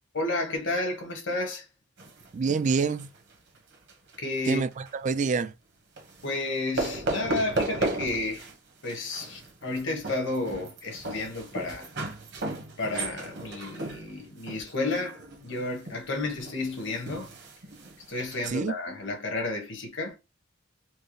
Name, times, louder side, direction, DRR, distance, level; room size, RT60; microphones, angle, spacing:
voice 1, 0.1-1.7 4.2-4.6 6.2-8.5 8.8-11.9 12.8-17.3 18.1-20.2, left 2 dB, 65° left, 1.4 m, -31 dB
sound 1, 2.0-4.2 4.5-4.9 6.0-6.4 6.8-8.5 8.8-18.5, right 2 dB, 60° right, 1.1 m, -35 dB
voice 2, 2.3-3.1 4.5-5.5 18.5-18.7, right 5 dB, 40° right, 0.3 m, -27 dB
4.5 x 2.0 x 3.1 m
head